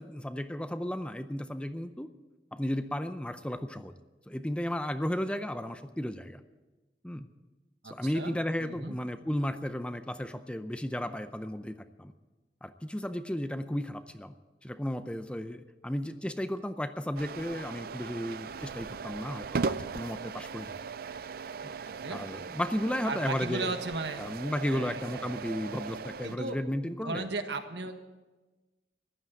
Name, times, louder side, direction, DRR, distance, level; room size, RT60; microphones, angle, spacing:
voice 1, 0.0-2.1 2.5-3.9 4.3-6.4 7.0-7.3 7.8-12.1 12.6-14.3 14.6-20.7 21.6-21.7 22.1-23.7 24.2-27.2, equal, 5° left, 10 dB, 0.5 m, -34 dB
voice 2, 7.8-9.0 21.9-22.3 23.0-24.3 24.7-25.5 26.2-26.6 27.0-27.9, right 3 dB, 70° right, 7 dB, 1.5 m, -36 dB
sound 1, 17.2-26.4, right 5 dB, 55° right, 0.4 m, -38 dB
15.0 x 11.5 x 8.0 m, 1.2 s
head